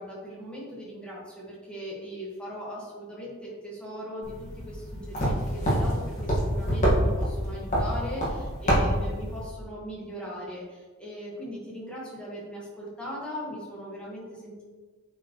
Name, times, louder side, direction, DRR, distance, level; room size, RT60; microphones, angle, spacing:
voice 1, 0.0-14.6, equal, 5° left, -6 dB, 1.6 m, -39 dB
sound 1, 4.2-9.4, equal, 35° left, 1.8 m, -27 dB
8.1 x 4.5 x 3.2 m, 1.4 s
head